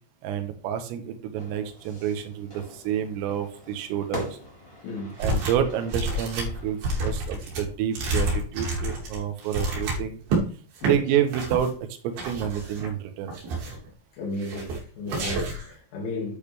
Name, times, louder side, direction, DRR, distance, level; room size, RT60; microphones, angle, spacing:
voice 1, 0.2-4.4 5.2-10.2 10.8-11.8 12.0-13.4, right 9 dB, 85° right, 3.8 m, -28 dB
Fire / Fireworks, 1.4-6.9, equal, 5° left, 3.5 m, -42 dB
voice 2, 4.8-5.2 10.8-11.0 14.2-16.4, left 2 dB, 70° left, 4.6 m, -34 dB
sound 1, 5.2-5.6 5.9-10.4 10.8-10.9 11.3-11.7 12.2-12.9 13.3-13.9 14.4-14.8 15.1-15.7, right 2 dB, 55° right, 4.2 m, -29 dB
10.5 x 8.7 x 3.4 m
omnidirectional pair, 5.9 m